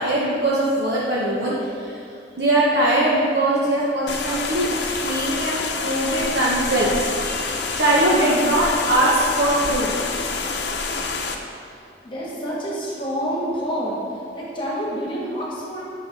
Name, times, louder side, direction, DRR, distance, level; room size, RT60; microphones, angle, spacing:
voice 1, 0.0-2.0 2.4-9.9, right 1 dB, 65° right, -6 dB, 1.1 m, -21 dB
sound 1, 4.1-11.4, left 4 dB, 70° left, 0.7 m, -27 dB
voice 2, 12.0-14.0 14.3-15.8, equal, 30° left, -5 dB, 1.5 m, -27 dB
9.5 x 6.2 x 4.1 m, 2.4 s
head